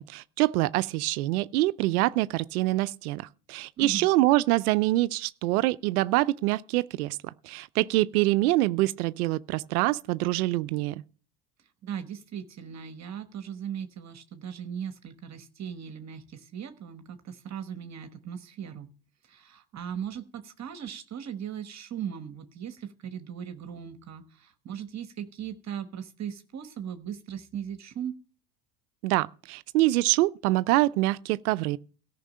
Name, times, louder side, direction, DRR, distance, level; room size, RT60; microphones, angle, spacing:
voice 1, 0.0-11.0 29.0-31.8, right 18 dB, 85° right, 0.6 m, -25 dB
voice 2, 3.8-4.1 11.8-18.9 19.2-28.2, right 8 dB, 40° right, 1.2 m, -38 dB
13.5 x 5.9 x 8.5 m
supercardioid pair, 90°, 43 cm